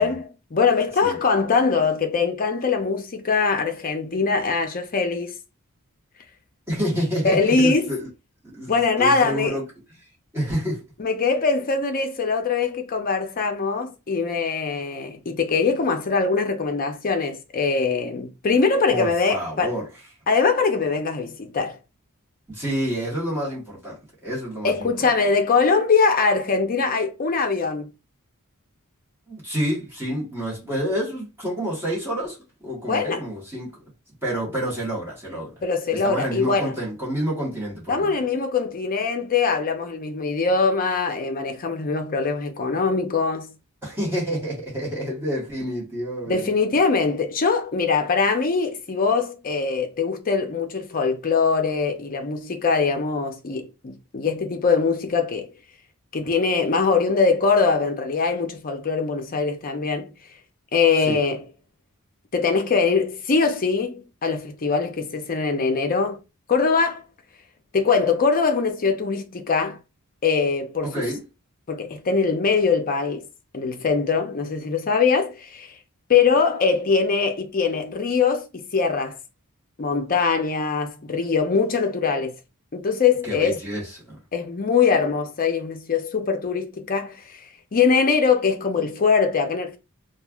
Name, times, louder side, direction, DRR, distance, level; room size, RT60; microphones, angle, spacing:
voice 1, 0.0-5.3 7.2-7.9 8.7-9.6 11.0-19.7 20.3-21.8 24.6-27.9 32.9-33.3 35.6-36.7 37.9-43.5 46.3-55.5 56.1-60.1 60.7-61.4 62.3-66.2 66.5-67.0 67.7-69.8 70.2-71.1 71.7-73.3 73.5-75.7 76.1-79.2 79.8-82.4 82.7-83.6 84.3-87.4 87.7-89.8, left 5 dB, 40° left, 0.5 m, -22 dB
voice 2, 6.7-8.1 8.4-9.7 10.3-10.8 18.9-19.9 22.5-25.3 29.3-33.8 34.2-35.6 35.9-38.2 43.8-46.6 61.0-61.2 70.8-71.2 83.2-84.2, equal, 10° right, 1.2 m, -29 dB
3.1 x 2.3 x 2.3 m
head